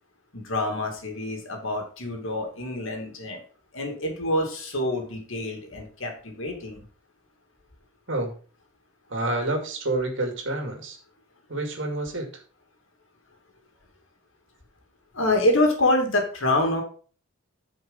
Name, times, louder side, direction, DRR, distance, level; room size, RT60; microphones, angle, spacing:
voice 1, 0.3-3.4 3.7-6.8 15.1-16.8, left 1 dB, 65° left, 2 dB, 2.5 m, -26 dB
voice 2, 9.1-11.0 11.5-12.4, right 2 dB, 60° right, 3 dB, 2.4 m, -28 dB
9.3 x 5.2 x 5.5 m, 0.40 s
head